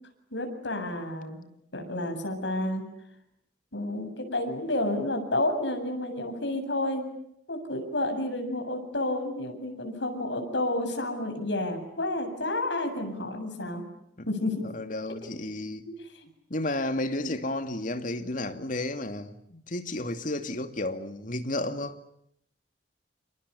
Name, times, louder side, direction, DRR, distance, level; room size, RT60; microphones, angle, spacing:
voice 1, 0.3-1.4 1.7-2.8 3.7-7.1 7.5-13.8 14.3-14.6 15.9-16.0 17.2-17.4, left 1 dB, 75° left, 7.9 m, -30 dB
voice 2, 14.6-15.8 16.5-22.0, left 1 dB, 45° left, 2.5 m, -32 dB
29.5 x 28.5 x 7.0 m
head